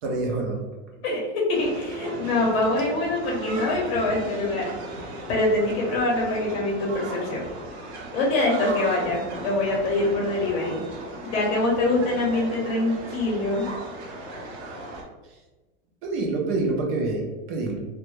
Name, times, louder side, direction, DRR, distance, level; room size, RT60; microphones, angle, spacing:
voice 1, 0.0-0.6 16.0-17.9, right 3 dB, 35° right, 1 dB, 0.4 m, -26 dB
voice 2, 1.0-4.7 5.0-7.4 8.1-10.8 11.2-13.7, left 2 dB, 60° left, -3 dB, 0.7 m, -24 dB
sound 1, 1.5-15.0, right 2 dB, 70° right, 0.7 m, -37 dB
2.1 x 2.1 x 3.0 m, 1.2 s
supercardioid pair, 160°, 34 cm